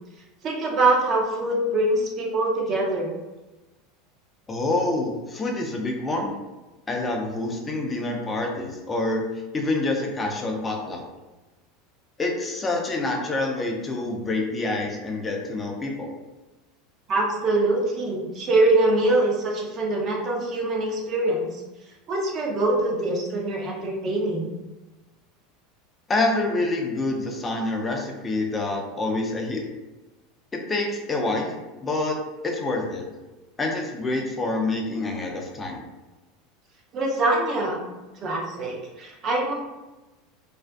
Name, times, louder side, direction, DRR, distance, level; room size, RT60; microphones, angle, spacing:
voice 1, 0.4-3.1 17.1-21.6 22.1-24.5 36.9-37.8 38.2-39.5, right 2 dB, 40° right, -1 dB, 0.7 m, -23 dB
voice 2, 4.5-6.3 6.9-9.2 9.5-11.0 12.2-16.1 26.1-29.6 30.7-32.2 32.4-33.0 33.6-35.8, left 2 dB, 20° left, 1 dB, 0.5 m, -27 dB
2.5 x 2.3 x 2.2 m, 1.1 s
supercardioid pair, 110°, 0 cm